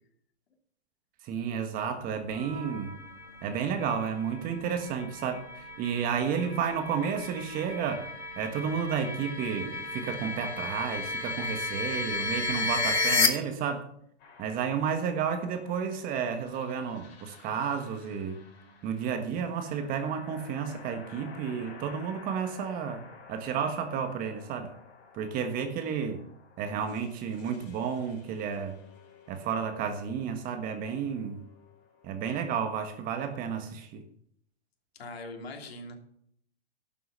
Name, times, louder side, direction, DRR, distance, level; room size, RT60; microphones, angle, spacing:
voice 1, 1.2-3.0 3.4-8.1 8.4-13.9 14.4-18.4 18.8-23.0 23.3-24.7 25.1-26.2 26.6-28.8 29.3-31.5 32.0-34.0, right 7 dB, 25° right, 1.4 m, -32 dB
sound 1, 2.3-13.3, left 3 dB, 85° left, 2.1 m, -33 dB
sound 2, 14.2-32.9, left 5 dB, 30° left, 4.4 m, -53 dB
voice 2, 34.9-36.0, left 2 dB, 65° left, 3.1 m, -41 dB
11.5 x 7.7 x 6.5 m
hypercardioid pair, 130°, 33 cm